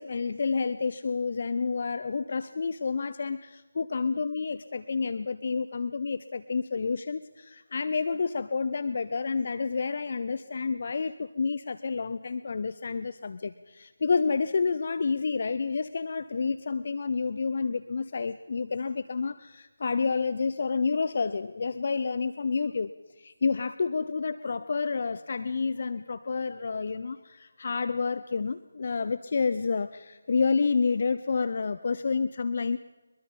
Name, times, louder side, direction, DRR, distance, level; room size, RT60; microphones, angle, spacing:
voice 1, 0.0-22.9 23.2-32.8, left 4 dB, 45° left, 13 dB, 0.7 m, -29 dB
23.0 x 22.5 x 5.5 m, 1.2 s
figure-of-eight pair, 155°, 0 cm